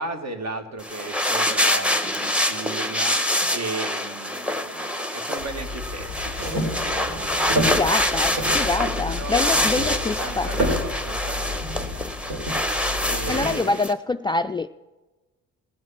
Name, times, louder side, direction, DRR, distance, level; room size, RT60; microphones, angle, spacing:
voice 1, 0.0-12.1 13.1-13.8, right 3 dB, 50° right, 5 dB, 2.1 m, -36 dB
sound 1, 0.8-13.9, left 1 dB, 5° right, 1.0 m, -25 dB
sound 2, 5.4-13.5, left 1 dB, 85° right, 3.8 m, -30 dB
voice 2, 7.6-10.5 13.3-14.7, left 3 dB, 15° left, 8 dB, 0.3 m, -25 dB
18.0 x 6.3 x 5.8 m, 1.2 s
supercardioid pair, 70°, 35 cm